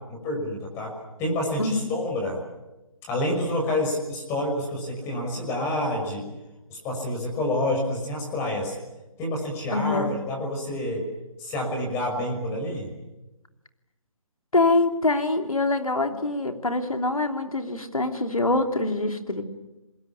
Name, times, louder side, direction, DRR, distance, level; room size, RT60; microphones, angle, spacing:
voice 1, 0.1-0.9 1.2-2.4 3.1-6.2 6.7-8.8 9.2-11.1 11.4-12.9, left 1 dB, 15° left, 1 dB, 5.9 m, -28 dB
voice 2, 1.6-2.0 9.7-10.1 14.5-19.4, left 2 dB, 90° left, 6 dB, 3.2 m, -24 dB
27.0 x 21.5 x 8.6 m, 1.0 s
figure-of-eight pair, 150°, 17 cm